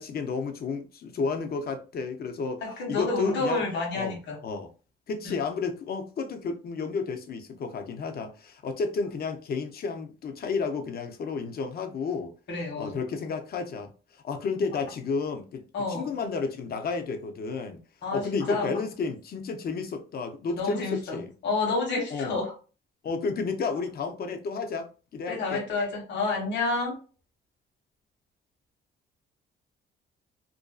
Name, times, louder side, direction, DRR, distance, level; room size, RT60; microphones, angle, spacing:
voice 1, 0.0-2.6 2.9-3.6 3.9-4.7 5.1-12.3 12.8-17.8 18.1-21.3 22.1-22.4 23.0-25.6, left 4 dB, 50° left, 0.5 m, -32 dB
voice 2, 2.6-4.4 12.5-12.9 15.7-16.1 18.0-18.7 20.5-21.2 21.4-22.5 25.3-26.9, left 3 dB, 65° left, 1.2 m, -29 dB
2.5 x 2.2 x 2.3 m
cardioid pair, 90°, 20 cm